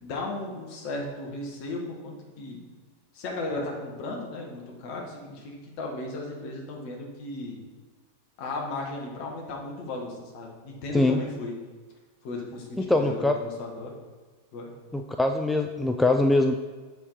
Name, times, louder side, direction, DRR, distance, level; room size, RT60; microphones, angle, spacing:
voice 1, 0.0-2.6 3.1-7.7 8.4-11.5 12.2-13.9 14.5-14.7, left 2 dB, 45° left, 0 dB, 1.5 m, -35 dB
voice 2, 12.8-13.4 14.9-16.5, left 2 dB, 5° left, 5 dB, 0.3 m, -23 dB
6.6 x 4.8 x 4.2 m, 1.3 s
figure-of-eight pair, 90°, 0 cm